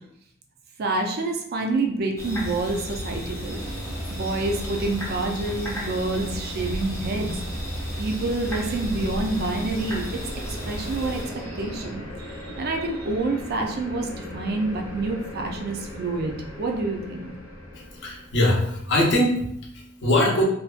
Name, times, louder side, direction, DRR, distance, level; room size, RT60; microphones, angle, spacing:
voice 1, 0.8-3.6 4.1-7.4 8.0-10.2 10.7-11.2 11.6-17.3, right 2 dB, 50° right, 2 dB, 0.4 m, -28 dB
sound 1, 2.2-11.2, equal, 15° left, 0.5 m, -33 dB
Diesel Shunter Train, 3.5-11.9, right 2 dB, 75° right, 1.0 m, -42 dB
sound 2, 7.4-18.7, left 1 dB, 90° left, 0.8 m, -39 dB
voice 2, 17.7-20.4, left 1 dB, 60° left, -2 dB, 0.6 m, -22 dB
2.5 x 2.2 x 2.4 m, 0.73 s
head